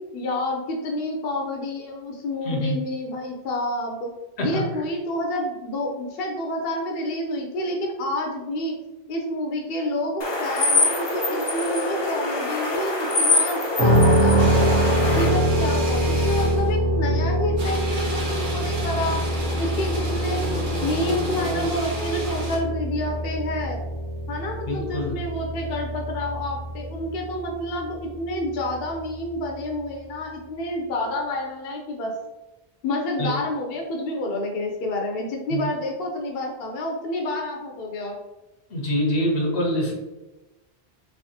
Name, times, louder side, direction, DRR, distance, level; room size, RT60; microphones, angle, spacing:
voice 1, 0.1-4.1 4.4-8.7 9.1-14.8 15.2-19.2 19.6-20.5 20.8-23.8 24.3-32.1 32.8-38.2, left 1 dB, 70° left, 0 dB, 0.8 m, -29 dB
voice 2, 2.4-2.8 4.4-4.7 24.7-25.2 33.2-33.3 35.5-35.7 38.7-39.9, equal, 90° left, 0 dB, 1.1 m, -25 dB
sound 1, 10.2-15.3, left 2 dB, 35° left, 0.4 m, -24 dB
sound 2, 13.8-29.6, right 1 dB, 70° right, 1.2 m, -25 dB
sound 3, 14.4-16.7 17.6-22.6, equal, 55° right, 0.9 m, -31 dB
3.4 x 3.2 x 2.7 m, 1.1 s
omnidirectional pair, 1.1 m